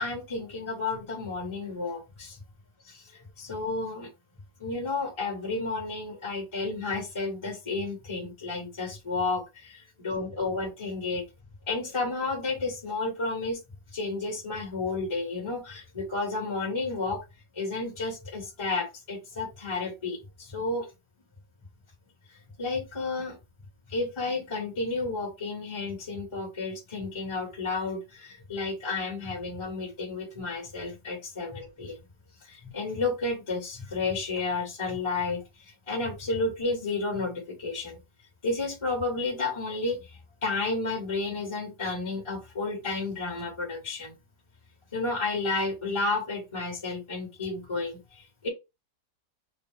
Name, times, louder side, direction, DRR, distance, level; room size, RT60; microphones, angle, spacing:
voice 1, 0.0-2.4 2.8-4.1 4.6-11.2 11.7-13.6 13.9-17.2 17.5-20.9 22.6-23.4 23.9-32.0 32.4-38.0 38.4-44.1 44.9-48.5, left 3 dB, 15° left, -1 dB, 1.3 m, -32 dB
6.4 x 2.3 x 3.6 m, 0.25 s
omnidirectional pair, 1.9 m